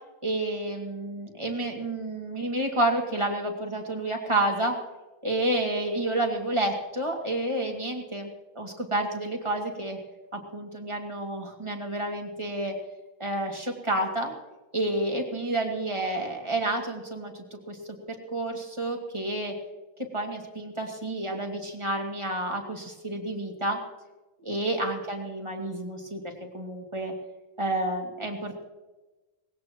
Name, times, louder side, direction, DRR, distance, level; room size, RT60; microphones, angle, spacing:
voice 1, 0.2-4.7 5.2-10.0 10.3-12.7 13.2-14.3 14.7-17.8 18.1-19.5 20.1-23.8 24.4-27.1 27.6-28.6, right 1 dB, 20° right, 1 dB, 2.4 m, -30 dB
20.0 x 17.0 x 3.0 m, 1.1 s
omnidirectional pair, 1.3 m